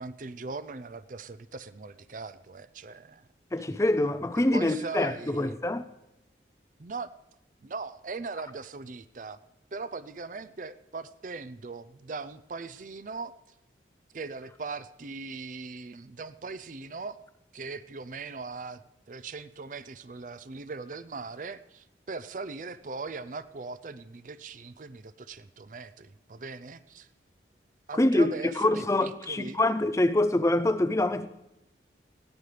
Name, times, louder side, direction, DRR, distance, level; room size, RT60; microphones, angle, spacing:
voice 1, 0.0-3.3 4.4-5.6 6.8-7.1 7.6-9.4 9.7-13.3 14.1-17.2 17.5-18.8 19.1-27.1 27.9-29.6, right 4 dB, 45° right, 0.5 m, -40 dB
voice 2, 3.5-5.9 27.9-31.3, left 1 dB, 15° left, 0.5 m, -25 dB
20.0 x 15.5 x 3.3 m
head